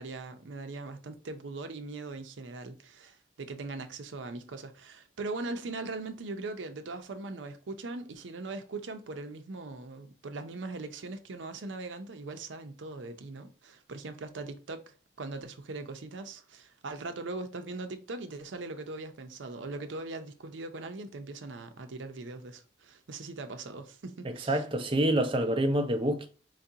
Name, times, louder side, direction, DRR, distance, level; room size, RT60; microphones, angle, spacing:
voice 1, 0.0-24.6, right 3 dB, 90° right, 0.6 m, -40 dB
voice 2, 24.2-26.3, right 1 dB, 30° right, 0.5 m, -27 dB
4.5 x 2.4 x 2.8 m
head